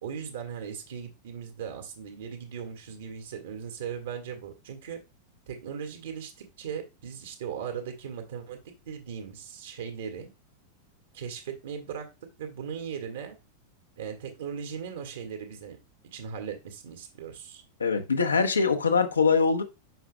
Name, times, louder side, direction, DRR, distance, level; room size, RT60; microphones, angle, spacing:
voice 1, 0.0-5.0 5.5-8.6 8.9-10.3 11.1-12.1 12.4-13.4 14.0-15.8 16.1-17.6, right 7 dB, 60° right, 1.9 m, -38 dB
voice 2, 17.8-19.6, left 5 dB, 75° left, 1.0 m, -23 dB
7.9 x 5.9 x 2.3 m
figure-of-eight pair, 90°, 0 cm